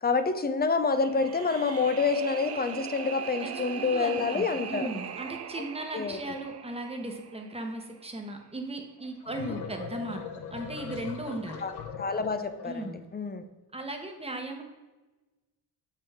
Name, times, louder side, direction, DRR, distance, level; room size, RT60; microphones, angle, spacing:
voice 1, 0.0-4.9 5.9-6.4 9.4-9.6 11.6-11.7 12.0-13.5, left 4 dB, 25° left, 10 dB, 0.5 m, -28 dB
sound 1, 1.0-8.1, right 8 dB, 40° right, 0.5 m, -40 dB
voice 2, 3.4-10.2 10.5-11.6 12.6-13.0 13.7-14.6, right 2 dB, 15° right, 3 dB, 1.1 m, -37 dB
sound 2, 9.0-12.9, left 6 dB, 70° left, 0.9 m, -40 dB
6.8 x 5.7 x 3.5 m, 1.2 s
cardioid pair, 90°, 41 cm